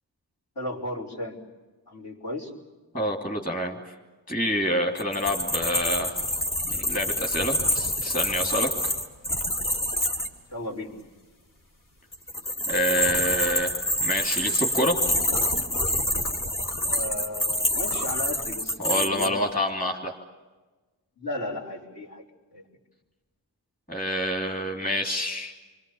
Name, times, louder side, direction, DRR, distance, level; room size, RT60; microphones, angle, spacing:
voice 1, 0.6-1.4 1.9-2.5 10.5-10.9 16.8-19.4 21.2-22.2 22.5-22.7, left 1 dB, 60° left, -5 dB, 5.1 m, -34 dB
voice 2, 2.9-3.8 4.3-6.1 6.7-8.7 12.7-13.7 14.0-15.0 18.8-20.2 23.9-25.5, equal, 20° left, -1 dB, 2.9 m, -27 dB
sound 1, 5.0-10.3 12.1-19.3, left 1 dB, 45° left, 3.1 m, -27 dB
28.5 x 24.0 x 7.1 m, 1.2 s
wide cardioid pair, 80°, 43 cm